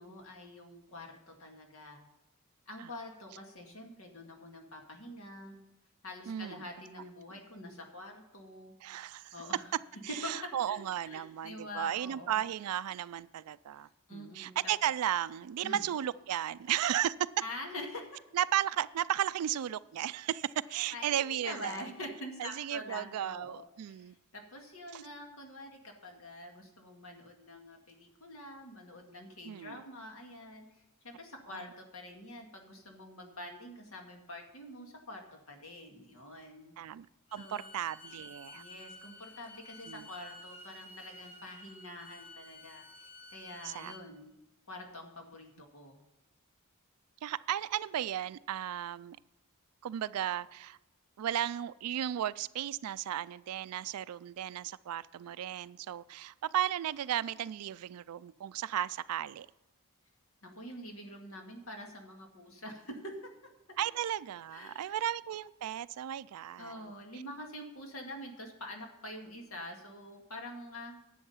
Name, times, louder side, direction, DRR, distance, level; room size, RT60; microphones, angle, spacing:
voice 1, 0.0-2.1 2.7-5.6 6.0-8.7 9.3-9.7 10.2-10.3 10.7-12.4 14.1-14.6 15.6-15.9 17.4-18.1 20.9-30.7 31.0-36.7 37.4-37.7 38.5-44.3 44.7-46.0 60.4-63.2 64.5-65.0 66.6-71.0, left 1 dB, 65° left, 2 dB, 2.1 m, -46 dB
voice 2, 6.3-6.6 8.8-9.3 10.0-17.1 18.3-21.9 22.4-24.2 24.9-25.0 29.4-29.8 31.5-31.7 36.8-37.1 37.3-38.6 39.9-40.1 43.6-43.9 47.2-49.2 49.8-50.8 51.2-59.5 63.8-66.9, right 11 dB, 85° right, 16 dB, 0.3 m, -35 dB
Bowed string instrument, 37.3-44.0, left 2 dB, 25° left, 1.4 m, -52 dB
11.0 x 7.7 x 5.6 m, 0.98 s
head